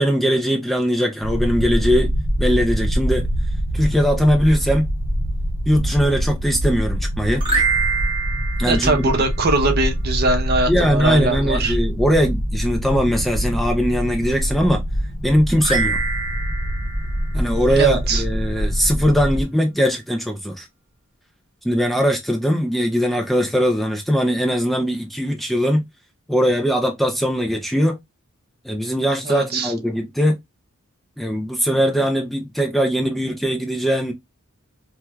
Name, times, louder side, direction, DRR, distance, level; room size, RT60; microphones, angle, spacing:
voice 1, 0.0-2.1 2.4-3.3 3.7-4.9 5.7-7.4 8.6-9.1 10.7-14.8 15.2-16.0 17.3-20.7 21.6-25.8 26.3-28.0 28.6-30.4 31.2-34.1, equal, ahead, 0.4 m, -20 dB
sound 1, 1.2-19.4, equal, 60° left, 0.7 m, -24 dB
sound 2, 7.4-9.8 15.6-18.2, right 4 dB, 20° right, 1.1 m, -26 dB
voice 2, 8.6-11.8 17.8-18.2 29.3-29.7, right 2 dB, 45° right, 0.7 m, -21 dB
4.5 x 2.2 x 2.2 m
head